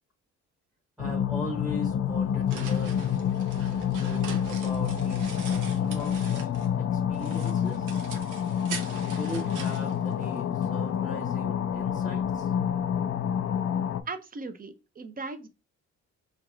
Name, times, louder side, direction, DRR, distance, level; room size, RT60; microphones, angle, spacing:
sound 1, 1.0-14.0, left 8 dB, 50° left, 0.5 m, -28 dB
voice 1, 1.0-3.1 3.9-6.1 6.4-6.5 6.8-7.9 9.1-12.5, equal, ahead, 0.9 m, -39 dB
sound 2, 2.1-6.8 7.1-10.7, right 6 dB, 80° right, 0.9 m, -43 dB
voice 2, 14.1-15.5, right 3 dB, 30° right, 0.6 m, -38 dB
4.6 x 3.0 x 2.4 m
cardioid pair, 90°, 30 cm